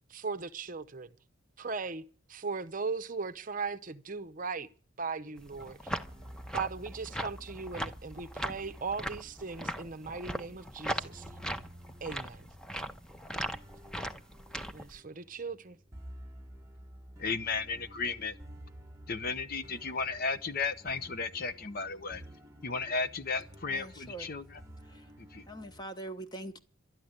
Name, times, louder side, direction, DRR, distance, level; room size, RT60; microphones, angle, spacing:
voice 1, 0.1-1.1 1.6-2.0 2.3-4.7 5.0-5.9 6.5-11.3 12.0-12.5 14.7-15.8, right 4 dB, 40° right, 0.7 m, -38 dB
sound 1, 5.4-15.0, equal, 5° left, 0.8 m, -39 dB
sound 2, 6.0-25.8, equal, 15° right, 1.2 m, -52 dB
voice 2, 17.2-18.3 19.1-22.2 22.6-24.6 25.3-25.4, left 4 dB, 45° left, 0.7 m, -34 dB
voice 3, 23.7-24.3 24.8-25.1 25.5-26.6, right 1 dB, 20° left, 1.2 m, -43 dB
12.5 x 10.0 x 8.0 m
head